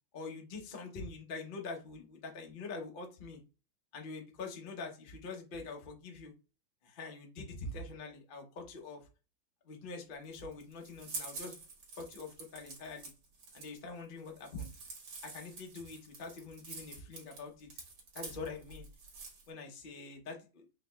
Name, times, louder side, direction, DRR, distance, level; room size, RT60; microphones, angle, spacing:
voice 1, 0.1-3.4 3.9-6.3 6.8-9.0 9.7-11.6 12.0-13.1 13.5-14.7 15.2-17.7 18.1-18.9 19.5-20.6, left 3 dB, 60° left, 2 dB, 0.5 m, -44 dB
sound 1, 10.1-19.5, right 4 dB, 60° right, 1.8 m, -48 dB
4.7 x 3.0 x 2.2 m, 0.31 s
omnidirectional pair, 2.2 m